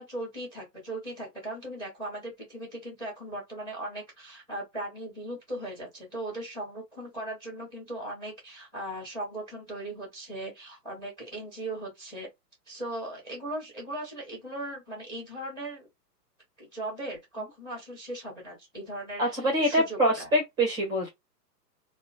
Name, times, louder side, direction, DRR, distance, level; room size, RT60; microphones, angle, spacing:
voice 1, 0.0-12.3 12.7-15.9 16.6-20.3, right 1 dB, 10° left, 1.1 m, -38 dB
voice 2, 19.2-21.1, equal, 10° right, 0.7 m, -25 dB
2.9 x 2.1 x 2.7 m
figure-of-eight pair, 125°, 49 cm